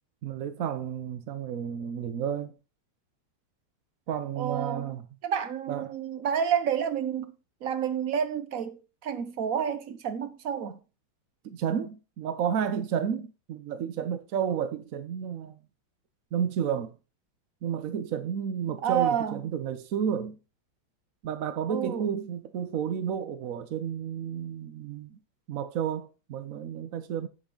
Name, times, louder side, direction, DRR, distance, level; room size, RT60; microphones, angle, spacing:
voice 1, 0.2-2.5 4.1-5.0 5.7-5.9 11.4-15.6 16.3-16.9 17.6-20.4 21.2-25.2 25.5-27.3, right 8 dB, 70° right, 0.8 m, -31 dB
voice 2, 4.4-4.9 5.2-7.3 7.6-10.8 18.8-19.4 21.7-22.1, right 8 dB, 55° right, 1.1 m, -29 dB
8.5 x 7.6 x 3.8 m
omnidirectional pair, 2.3 m